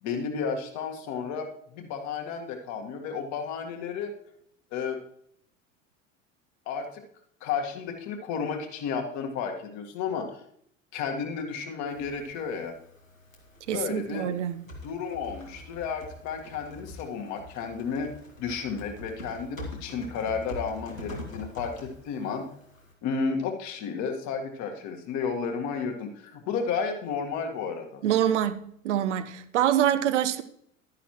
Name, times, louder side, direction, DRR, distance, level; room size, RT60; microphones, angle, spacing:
voice 1, 0.0-1.5 1.7-4.1 4.7-5.0 6.6-7.0 7.4-10.4 10.9-12.7 13.7-14.3 14.8-18.1 18.4-22.4 23.0-28.0, left 6 dB, 45° left, 1.8 m, -32 dB
Typing, 11.9-22.9, left 1 dB, 90° left, 1.9 m, -44 dB
voice 2, 13.7-14.6 28.0-28.6 28.8-30.4, right 10 dB, 65° right, 0.8 m, -25 dB
11.5 x 9.8 x 3.0 m
figure-of-eight pair, 75°, 39 cm